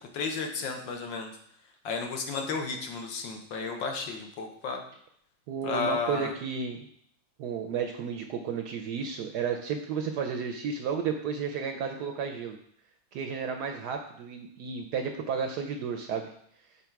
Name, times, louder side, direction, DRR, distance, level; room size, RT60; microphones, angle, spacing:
voice 1, 0.1-1.3 1.9-4.8 5.6-6.3, left 4 dB, 70° left, 3 dB, 1.6 m, -33 dB
voice 2, 5.5-6.9 7.4-12.6 13.1-16.3, right 6 dB, 75° right, 4 dB, 1.0 m, -32 dB
7.0 x 4.0 x 4.5 m, 0.67 s
omnidirectional pair, 2.1 m